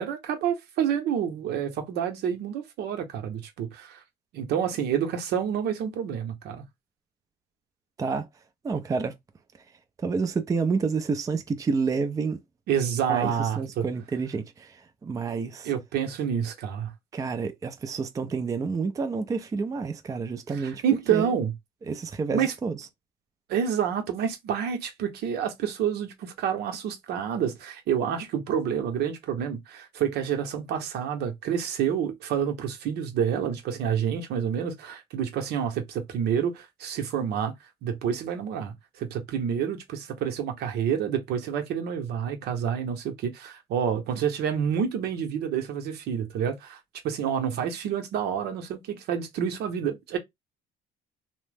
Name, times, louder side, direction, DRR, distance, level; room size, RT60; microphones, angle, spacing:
voice 1, 0.0-4.0 4.3-6.6 12.7-13.8 15.6-16.9 20.6-21.5 22.3-22.5 23.5-37.5 37.8-46.8 47.0-50.2, right 8 dB, 75° right, 0.8 m, -28 dB
voice 2, 8.6-9.1 10.0-12.4 13.1-15.7 17.1-20.8 21.1-21.3 21.9-22.8, right 4 dB, 20° right, 0.4 m, -29 dB
2.9 x 2.0 x 3.3 m
cardioid pair, 110°, 17 cm